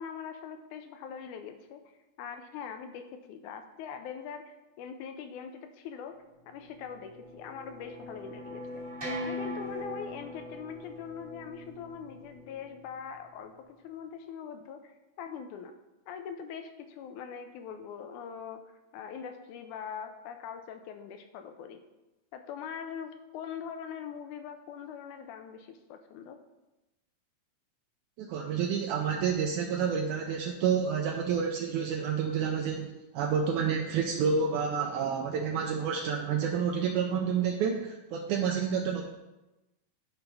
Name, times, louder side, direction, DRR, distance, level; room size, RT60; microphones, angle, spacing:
voice 1, 0.0-1.8 2.2-8.9 9.2-15.7 16.1-18.6 18.9-21.8 22.3-26.4, left 7 dB, 80° left, 7 dB, 2.0 m, -42 dB
sound 1, 6.5-12.9, left 1 dB, 10° right, 1.2 m, -41 dB
voice 2, 28.2-39.0, right 6 dB, 75° right, 1 dB, 2.0 m, -29 dB
11.5 x 5.5 x 3.4 m, 1.0 s
omnidirectional pair, 3.7 m